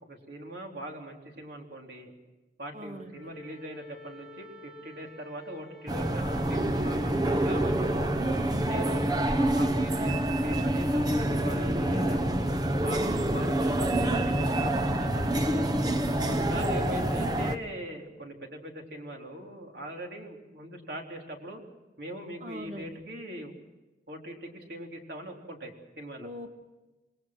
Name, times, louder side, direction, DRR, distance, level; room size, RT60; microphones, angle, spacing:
voice 1, 0.0-2.1 2.6-7.8 8.6-12.2 12.8-15.4 16.3-21.6 22.0-23.5 24.1-26.3, right 1 dB, 60° right, 1 dB, 3.9 m, -41 dB
voice 2, 2.7-3.3 8.4-8.8 13.0-13.3 16.2-16.5 22.4-23.0 26.2-26.5, equal, 40° right, 4 dB, 2.3 m, -43 dB
Wind instrument woodwind instrument, 3.1-9.4, left 3 dB, ahead, 7.1 m, -51 dB
sound 1, 5.9-17.6, right 1 dB, 20° right, 1.1 m, -27 dB
28.5 x 20.0 x 6.1 m, 1.1 s
head